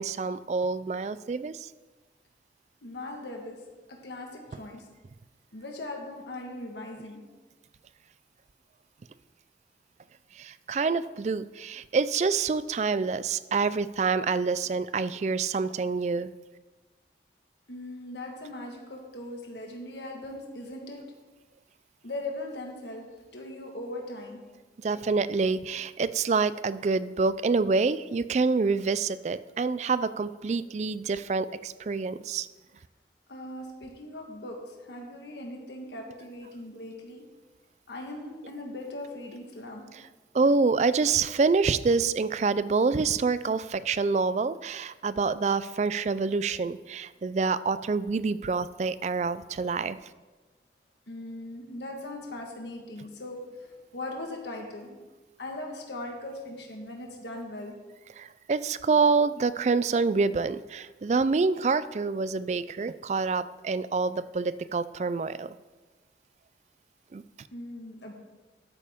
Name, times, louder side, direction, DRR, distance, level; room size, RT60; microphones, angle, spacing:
voice 1, 0.0-1.7 10.4-16.3 24.8-32.5 40.3-50.0 58.2-65.5 67.1-67.2, right 4 dB, 40° right, 15 dB, 0.3 m, -27 dB
voice 2, 2.8-3.6 3.9-4.9 5.5-7.2 17.7-21.0 22.0-23.1 23.3-24.4 33.3-37.2 37.9-39.9 51.1-54.9 55.4-57.7 67.5-68.1, left 1 dB, 80° left, 1 dB, 1.5 m, -39 dB
12.5 x 8.7 x 3.6 m, 1.2 s
head